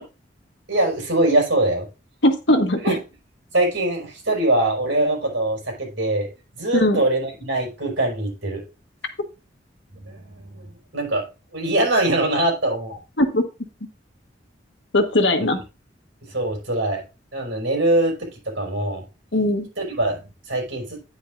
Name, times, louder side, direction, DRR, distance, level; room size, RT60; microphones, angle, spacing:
voice 1, 0.7-1.9 2.8-3.0 3.5-6.3 6.5-8.6 9.9-13.0 16.3-17.0 17.3-19.0 19.8-21.0, right 1 dB, 80° right, 1 dB, 5.0 m, -23 dB
voice 2, 2.2-3.0 6.7-7.0 13.2-13.4 14.9-15.6 19.3-19.7, left 1 dB, 80° left, 6 dB, 1.4 m, -19 dB
9.6 x 8.5 x 2.5 m, 0.28 s
head